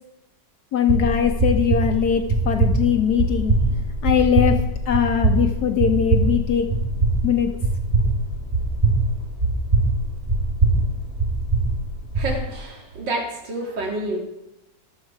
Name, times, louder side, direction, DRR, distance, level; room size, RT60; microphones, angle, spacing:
voice 1, 0.7-3.5 4.0-4.6 4.9-6.7 7.2-7.5, left 8 dB, 65° left, 5 dB, 1.4 m, -21 dB
sound 1, 0.9-12.3, right 2 dB, 25° right, 3.3 m, -22 dB
voice 2, 12.1-14.2, right 2 dB, 90° right, 1 dB, 2.7 m, -28 dB
20.5 x 7.4 x 4.8 m, 0.89 s
omnidirectional pair, 1.9 m